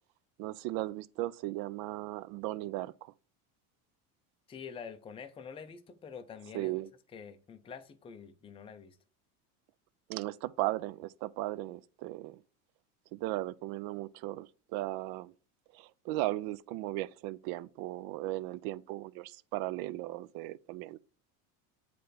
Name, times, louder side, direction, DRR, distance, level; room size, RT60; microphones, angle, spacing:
voice 1, 0.4-3.1 6.5-6.9 10.1-12.4 13.1-15.3 15.7-21.0, right 17 dB, 60° right, 0.5 m, -37 dB
voice 2, 4.5-6.7 7.1-9.0, left 6 dB, 15° left, 0.5 m, -46 dB
8.0 x 3.4 x 3.9 m
supercardioid pair, 130°, 42 cm